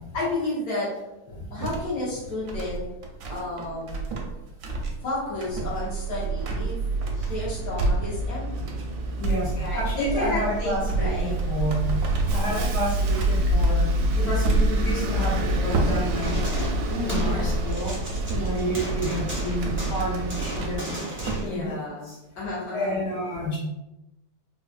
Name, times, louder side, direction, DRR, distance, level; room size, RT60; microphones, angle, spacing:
voice 1, 0.1-0.9 1.2-2.8 3.3-4.1 5.0-6.8 7.2-8.7 9.6-11.3 12.3-12.7 16.9-17.6 18.3-18.7 21.4-23.0, left 2 dB, 60° left, -7 dB, 1.6 m, -32 dB
sound 1, 1.6-17.5 17.9-21.5, right 3 dB, 70° right, 0.8 m, -31 dB
Bus, 5.5-20.8, right 1 dB, 85° right, 1.2 m, -27 dB
voice 2, 9.2-16.4 17.0-17.9 18.4-22.2 22.7-23.6, equal, 75° left, -7 dB, 1.4 m, -30 dB
sound 2, 16.2-17.4 17.7-21.5, right 1 dB, 15° right, 0.4 m, -35 dB
4.0 x 2.3 x 2.4 m, 0.97 s
omnidirectional pair, 1.8 m